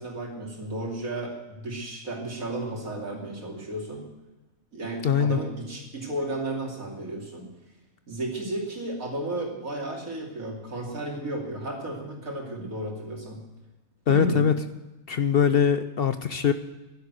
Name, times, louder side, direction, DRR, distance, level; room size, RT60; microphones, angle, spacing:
voice 1, 0.0-4.0 4.7-7.5 8.1-13.4 14.1-14.4, right 1 dB, 80° right, 0 dB, 3.2 m, -33 dB
voice 2, 5.0-5.4 14.1-14.5 15.1-16.5, left 7 dB, 55° left, 10 dB, 0.7 m, -22 dB
11.5 x 11.0 x 8.1 m, 1.1 s
omnidirectional pair, 1.4 m